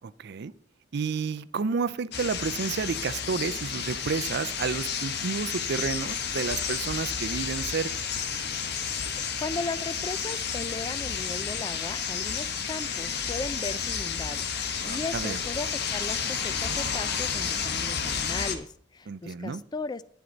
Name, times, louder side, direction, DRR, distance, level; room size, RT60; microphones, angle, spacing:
voice 1, 0.2-0.5 0.9-8.1 14.8-15.4 19.1-19.6, right 5 dB, 60° right, 16 dB, 0.4 m, -31 dB
sound 1, 2.1-18.6, left 6 dB, 60° left, 1.1 m, -31 dB
voice 2, 9.4-20.1, left 3 dB, 20° left, 16 dB, 0.3 m, -37 dB
11.0 x 10.5 x 4.0 m, 0.64 s
head